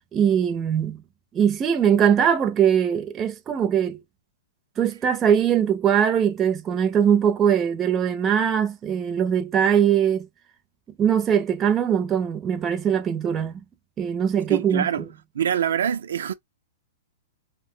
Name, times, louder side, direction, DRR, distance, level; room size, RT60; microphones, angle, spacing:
voice 1, 0.1-1.0 1.3-4.0 4.8-10.3 11.0-13.6 14.0-14.9, right 8 dB, 20° right, 0.5 m, -21 dB
voice 2, 14.5-15.1 15.3-16.3, right 9 dB, 80° right, 0.4 m, -24 dB
2.5 x 2.1 x 3.7 m
hypercardioid pair, 150°, 0 cm